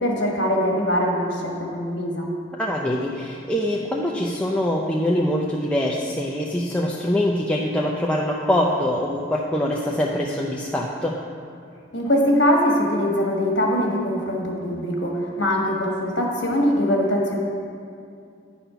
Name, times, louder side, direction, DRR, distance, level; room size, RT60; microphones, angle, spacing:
voice 1, 0.0-2.3 11.9-17.4, equal, 65° left, 0 dB, 1.4 m, -22 dB
voice 2, 2.6-11.2, left 1 dB, 5° left, -3 dB, 0.4 m, -24 dB
10.0 x 4.2 x 5.6 m, 2.4 s
head